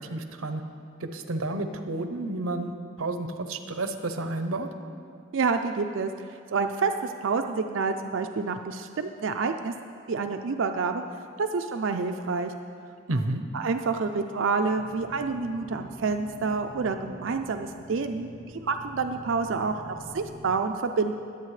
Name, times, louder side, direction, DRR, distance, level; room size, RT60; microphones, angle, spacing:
voice 1, 0.1-0.6 1.0-2.7 3.0-4.7 13.1-13.4, right 2 dB, 85° right, 8 dB, 0.8 m, -30 dB
voice 2, 5.3-9.7 10.1-11.0 11.4-12.5 13.5-21.1, right 4 dB, 65° right, 6 dB, 0.4 m, -28 dB
sound 1, 14.6-20.5, right 1 dB, 70° left, 3.2 m, -45 dB
21.5 x 8.3 x 3.2 m, 2.4 s
head